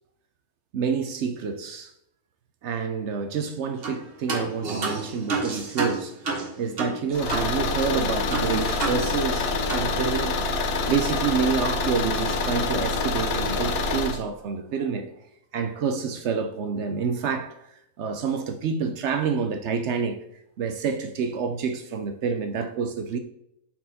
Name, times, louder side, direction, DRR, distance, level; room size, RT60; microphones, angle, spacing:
voice 1, 0.7-1.9 2.6-10.4 10.9-15.1 15.5-20.2 20.6-23.2, right 6 dB, 65° right, 0.7 m, -28 dB
sound 1, 3.8-4.0 4.3-7.5 7.8-7.9 8.3-9.4 9.7-9.9, right 4 dB, 45° right, 1.1 m, -30 dB
Car / Engine, 7.1-14.2, left 3 dB, 60° left, 0.6 m, -26 dB
5.8 x 4.4 x 4.1 m
omnidirectional pair, 1.6 m